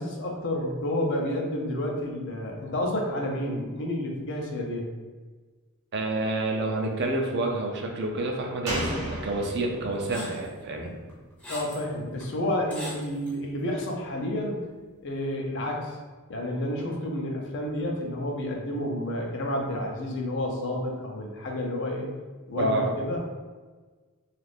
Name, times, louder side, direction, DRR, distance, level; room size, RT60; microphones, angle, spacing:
voice 1, 0.0-4.9 11.5-14.6 15.0-16.0 16.3-22.1 22.5-23.2, left 1 dB, 55° left, 0 dB, 0.5 m, -30 dB
voice 2, 5.9-9.0 9.2-11.0 22.6-22.9, right 2 dB, 50° right, 1 dB, 0.4 m, -28 dB
Slam, 8.7-12.1 12.4-12.5, equal, 85° right, 0.8 m, -35 dB
sound 1, 10.1-10.5 11.1-11.9 12.2-12.3 12.7-13.4, left 1 dB, 5° left, 0.6 m, -40 dB
2.4 x 2.4 x 3.3 m, 1.4 s
head